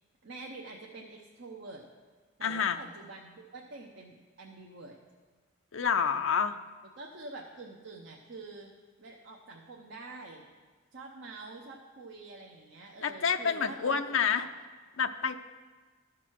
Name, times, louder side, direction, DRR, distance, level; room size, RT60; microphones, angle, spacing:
voice 1, 0.2-1.8 2.4-5.0 7.0-8.7 9.0-10.5 10.9-14.5, right 3 dB, 60° right, 0 dB, 0.8 m, -46 dB
voice 2, 2.4-2.8 5.7-6.6 13.0-14.4 15.0-15.4, left 6 dB, 65° left, 9 dB, 0.5 m, -28 dB
13.5 x 6.1 x 4.6 m, 1.4 s
head